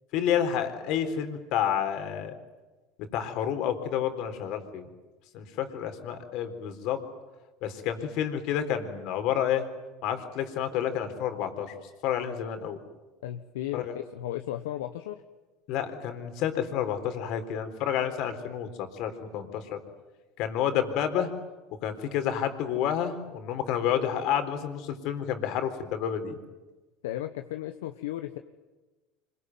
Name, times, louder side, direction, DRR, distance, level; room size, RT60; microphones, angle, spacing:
voice 1, 0.1-2.3 3.1-4.9 5.3-7.0 7.6-9.7 10.0-11.7 12.0-12.8 13.7-13.9 15.7-19.8 20.4-21.3 21.8-26.4, left 9 dB, 65° left, 8 dB, 4.0 m, -29 dB
voice 2, 13.2-15.2 27.0-28.4, left 13 dB, 85° left, 7 dB, 1.2 m, -35 dB
25.5 x 22.5 x 9.4 m, 1.2 s
hypercardioid pair, 85°, 0 cm